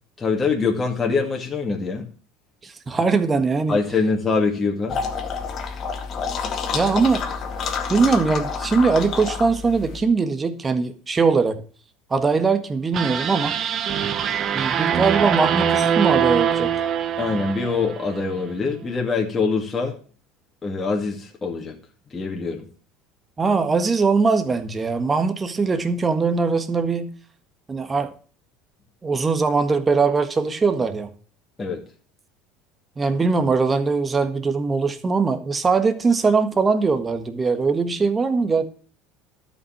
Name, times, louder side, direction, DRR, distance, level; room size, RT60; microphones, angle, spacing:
voice 1, 0.2-2.0 3.7-5.0 17.2-19.9 20.6-21.8 22.1-22.6 31.6-31.8, left 4 dB, 25° left, 0 dB, 2.4 m, -24 dB
voice 2, 2.6-3.8 6.7-7.3 7.9-11.6 12.1-13.5 14.5-16.7 23.4-27.1 27.7-28.1 29.0-31.1 33.0-38.6, right 4 dB, 25° right, 8 dB, 1.5 m, -21 dB
sound 1, 4.9-10.0, left 5 dB, 45° left, 2.0 m, -28 dB
sound 2, 12.9-18.2, right 8 dB, 45° right, 1.0 m, -23 dB
12.0 x 5.7 x 7.2 m, 0.41 s
hypercardioid pair, 85°, 0 cm